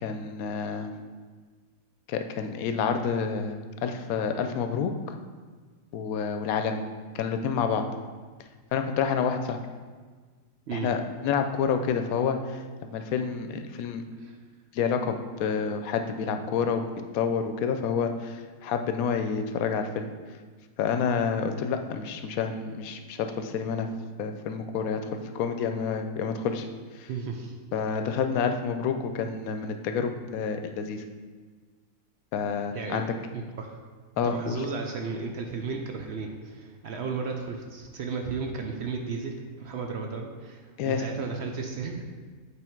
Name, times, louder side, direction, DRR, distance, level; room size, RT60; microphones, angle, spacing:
voice 1, 0.0-0.9 2.1-5.1 5.9-6.8 7.1-7.8 8.7-9.6 10.7-14.0 14.7-16.8 17.1-20.1 20.8-23.9 24.2-25.0 25.3-26.7 26.9-27.1 27.7-31.0 32.3-33.1 34.2-34.7 40.8-41.1, left 6 dB, 80° left, 7 dB, 1.0 m, -28 dB
voice 2, 27.1-27.5 32.7-33.0 33.3-33.8 34.2-42.0, right 5 dB, 60° right, 2 dB, 0.7 m, -34 dB
8.2 x 3.4 x 4.4 m, 1.5 s
omnidirectional pair, 1.5 m